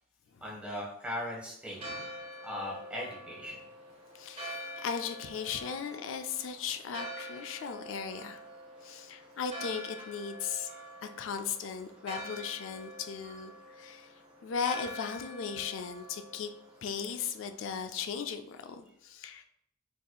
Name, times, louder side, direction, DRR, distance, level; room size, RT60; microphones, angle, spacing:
voice 1, 0.4-1.8 2.4-3.6 10.6-10.8, left 1 dB, 5° right, -5 dB, 1.3 m, -39 dB
Church bell, 1.7-18.3, equal, 30° right, 0.8 m, -46 dB
voice 2, 4.1-8.4 8.8-10.7 11.0-14.1 14.4-16.5 16.8-19.4, left 6 dB, 90° left, 7 dB, 0.4 m, -37 dB
4.8 x 3.8 x 2.3 m, 0.73 s
head